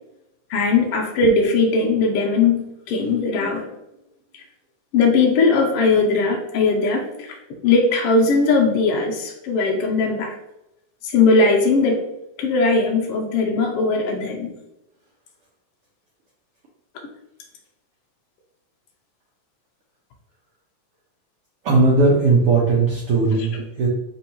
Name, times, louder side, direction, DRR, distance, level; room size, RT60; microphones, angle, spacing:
voice 1, 0.5-3.6 4.9-7.4 7.6-10.3 11.0-12.0 12.4-14.5 23.3-23.7, left 3 dB, 90° left, 2 dB, 1.3 m, -19 dB
voice 2, 21.6-23.9, right 3 dB, 70° right, -4 dB, 1.4 m, -17 dB
4.6 x 3.5 x 2.8 m, 0.86 s
omnidirectional pair, 3.4 m